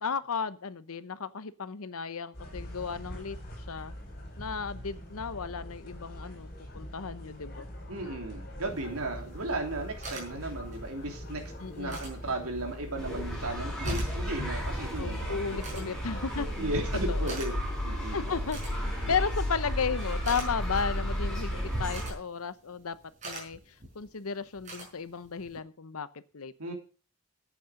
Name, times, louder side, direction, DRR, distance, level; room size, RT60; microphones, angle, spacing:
voice 1, 0.0-3.4 3.7-3.9 4.4-7.7 11.6-12.0 15.0-16.5 17.1-17.4 18.1-18.6 19.1-23.0 23.2-23.6 23.9-26.1 26.3-26.5, left 5 dB, 80° left, 15 dB, 0.8 m, -34 dB
sound 1, 2.3-17.3, equal, 45° left, 4.9 m, -41 dB
voice 2, 7.9-11.4 11.7-15.8 16.6-17.5 17.8-18.3 19.0-19.1 26.6-26.7, right 2 dB, 80° right, 2 dB, 3.3 m, -35 dB
sound 2, 8.7-25.6, right 3 dB, 35° right, 5.3 m, -48 dB
sound 3, 13.0-22.1, equal, 5° left, 6.4 m, -33 dB
10.5 x 8.5 x 6.4 m, 0.37 s
head